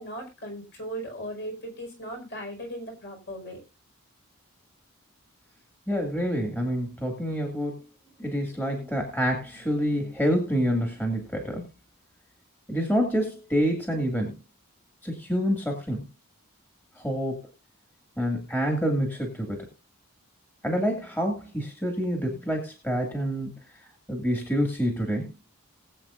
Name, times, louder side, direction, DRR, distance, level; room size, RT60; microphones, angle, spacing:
voice 1, 0.0-3.6, right 1 dB, 50° left, 1 dB, 4.9 m, -37 dB
voice 2, 5.9-7.8 8.2-11.7 12.7-14.4 15.0-16.0 17.0-17.5 18.2-19.7 20.6-23.5 24.1-25.3, equal, 10° left, 2 dB, 2.2 m, -27 dB
20.5 x 7.9 x 2.5 m, 0.26 s
head